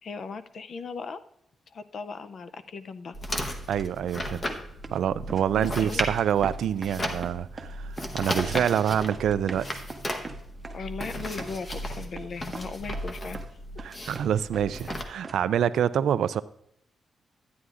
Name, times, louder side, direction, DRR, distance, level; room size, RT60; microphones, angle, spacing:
voice 1, 0.0-1.2 1.7-3.2 5.5-6.0 10.7-13.4, left 4 dB, 45° left, 12 dB, 0.5 m, -38 dB
sound 1, 3.1-15.0, left 1 dB, 25° left, 0.8 m, -35 dB
voice 2, 3.7-4.4 4.9-9.8 13.8-16.4, right 9 dB, 75° right, 15 dB, 0.3 m, -26 dB
sound 2, 4.0-4.2 4.5-5.0 5.3-5.8 6.0-7.0 7.2-7.7 8.0-8.8 9.1-11.8 12.1-12.3 12.5-13.5 13.8-14.6 14.9-15.5, right 3 dB, 20° right, 0.7 m, -41 dB
12.5 x 9.4 x 2.5 m, 0.75 s
wide cardioid pair, 170°, 0 cm